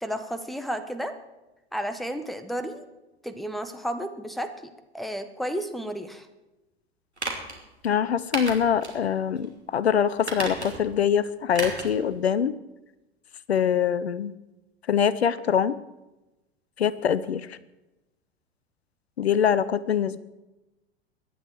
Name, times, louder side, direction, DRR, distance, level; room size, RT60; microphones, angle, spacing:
voice 1, 0.0-1.1 1.7-2.9 3.2-6.3, equal, ahead, 10 dB, 1.3 m, -32 dB
sound 1, 7.2-7.6 8.3-9.0 9.4-9.5 10.2-10.9 11.5-12.0 12.3-12.4, right 2 dB, 90° right, 2.9 m, -33 dB
voice 2, 7.8-12.5 13.5-14.3 14.9-15.8 16.8-17.5 19.2-20.2, left 8 dB, 75° left, 18 dB, 0.7 m, -24 dB
23.0 x 10.5 x 4.8 m, 1.0 s
figure-of-eight pair, 85°, 32 cm